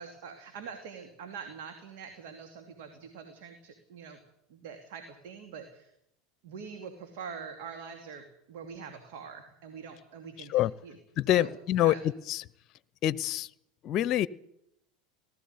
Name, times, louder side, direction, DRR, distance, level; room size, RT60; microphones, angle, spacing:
voice 1, 0.0-4.2 4.5-5.9 6.4-11.0 11.3-12.0, right 6 dB, 65° right, 6 dB, 2.8 m, -44 dB
voice 2, 11.2-12.4 13.0-13.5 13.8-14.3, left 13 dB, 50° left, 21 dB, 0.8 m, -26 dB
19.0 x 14.5 x 9.7 m, 0.79 s
hypercardioid pair, 85°, 0 cm